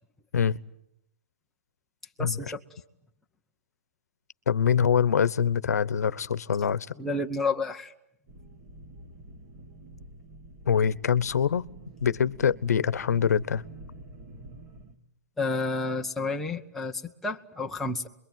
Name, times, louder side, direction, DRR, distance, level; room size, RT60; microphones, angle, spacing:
voice 1, 2.2-2.6 7.0-7.9 15.4-18.1, left 3 dB, 5° left, 0 dB, 1.0 m, -30 dB
voice 2, 4.5-6.9 10.7-11.7 12.0-13.6, left 7 dB, 85° left, 17 dB, 1.1 m, -24 dB
sound 1, 8.3-15.0, right 2 dB, 30° right, 2.4 m, -47 dB
28.0 x 22.5 x 9.1 m, 0.75 s
hypercardioid pair, 155°, 9 cm